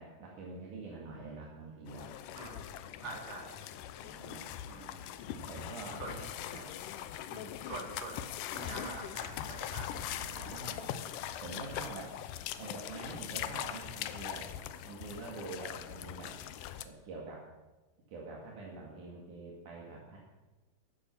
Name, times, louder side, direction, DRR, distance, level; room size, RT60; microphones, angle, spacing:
voice 1, 0.0-2.1 3.0-3.2 4.0-4.5 5.3-6.3 6.5-6.8 9.4-9.5 9.9-11.1 11.4-12.1 12.6-14.5 14.8-16.4 16.8-17.4 18.1-20.2, right 3 dB, 65° right, -3 dB, 3.5 m, -46 dB
sound 1, 1.9-16.8, left 11 dB, 80° left, 2.3 m, -41 dB
voice 2, 3.0-3.6 4.7-5.1 5.4-5.5 6.0-6.2 7.3-8.2 8.5-10.3, right 3 dB, 50° right, -2 dB, 4.4 m, -45 dB
15.0 x 12.0 x 5.9 m, 1.1 s
omnidirectional pair, 3.9 m